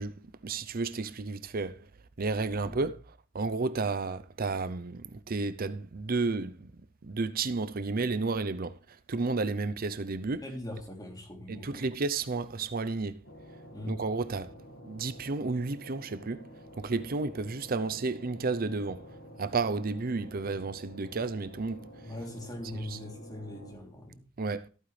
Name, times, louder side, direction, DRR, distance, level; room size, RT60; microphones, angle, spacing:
voice 1, 0.0-1.9 2.2-10.4 11.5-13.3 13.9-14.5 14.8-22.1 22.7-23.0 24.4-24.7, right 3 dB, 45° right, 0.6 m, -32 dB
voice 2, 2.5-2.8 10.4-11.9 13.7-13.9 22.0-24.2, left 1 dB, 20° left, 3.1 m, -41 dB
sound 1, 13.2-23.7, equal, 60° left, 1.7 m, -50 dB
14.5 x 9.2 x 3.3 m
head